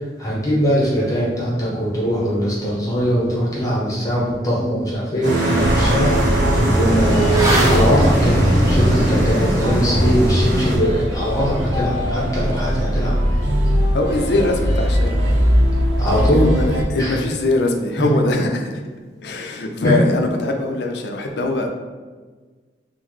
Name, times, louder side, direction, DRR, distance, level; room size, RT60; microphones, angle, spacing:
voice 1, 0.2-6.4 6.7-13.1 16.0-16.5 17.0-17.2 18.0-18.1 19.8-19.9, equal, 20° left, -6 dB, 0.7 m, -21 dB
Motorcycle / Accelerating revving vroom, 4.3-4.4 4.8-14.8 15.1-15.2, right 2 dB, 15° right, 0.4 m, -28 dB
sound 1, 5.2-10.8, right 1 dB, 45° right, 1.0 m, -19 dB
sound 2, 5.6-16.8, equal, 90° right, 0.6 m, -21 dB
voice 2, 13.9-15.2 16.1-18.8 19.2-21.7, left 2 dB, 65° left, 3 dB, 0.4 m, -22 dB
3.7 x 2.0 x 3.1 m, 1.4 s
head